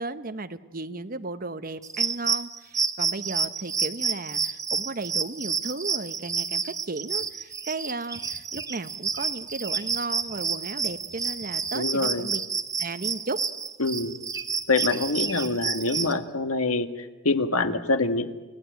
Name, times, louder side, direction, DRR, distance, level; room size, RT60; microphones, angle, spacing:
voice 1, 0.0-12.4 12.8-13.4, right 3 dB, 40° right, 9 dB, 0.9 m, -35 dB
sound 1, 1.8-16.1, right 5 dB, 15° right, 0.9 m, -29 dB
voice 2, 11.7-12.3 13.8-14.1 14.7-18.3, left 3 dB, 90° left, 9 dB, 1.6 m, -25 dB
29.0 x 17.0 x 9.1 m, 1.2 s
head